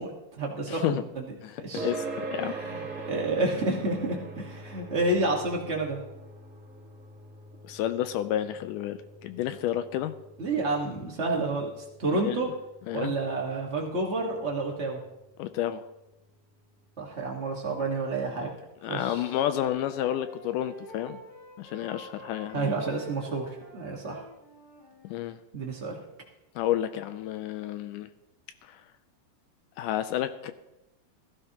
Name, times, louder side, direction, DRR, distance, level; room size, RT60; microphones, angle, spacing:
voice 1, 0.0-1.3 1.6-1.9 2.4-6.0 10.4-11.7 12.0-12.5 12.9-15.0 17.0-18.5 18.9-19.2 22.5-24.2 25.5-26.0, right 2 dB, 80° right, -1 dB, 0.6 m, -30 dB
voice 2, 0.7-1.0 1.4-2.6 7.6-10.1 12.1-12.4 12.9-13.1 15.4-15.8 18.8-21.2 21.6-22.7 25.0-25.4 26.6-28.1 28.6-28.8 29.8-30.5, left 12 dB, 85° left, 10 dB, 1.9 m, -30 dB
sound 1, 1.8-16.7, right 3 dB, 40° right, 1.2 m, -43 dB
Wind instrument woodwind instrument, 18.8-25.3, right 1 dB, 45° left, 5.4 m, -49 dB
16.0 x 14.5 x 2.9 m, 0.95 s
omnidirectional pair, 4.1 m